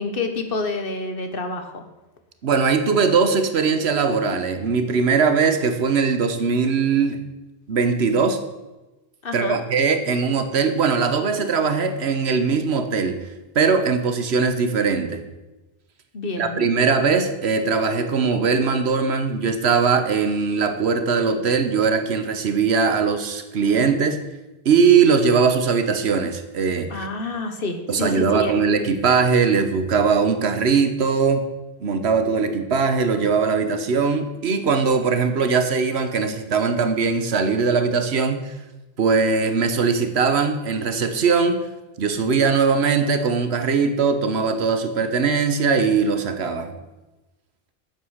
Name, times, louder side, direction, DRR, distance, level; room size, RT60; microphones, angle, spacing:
voice 1, 0.0-1.8 9.2-9.6 16.1-16.7 26.9-28.5, left 3 dB, 60° left, 7 dB, 1.3 m, -28 dB
voice 2, 2.4-7.2 7.7-8.4 9.3-13.2 13.5-15.2 16.4-24.2 24.6-27.1 27.9-31.4 31.8-38.5 39.0-41.6 42.0-46.7, right 5 dB, 85° right, 8 dB, 1.3 m, -20 dB
8.9 x 7.4 x 6.4 m, 1.1 s
omnidirectional pair, 1.1 m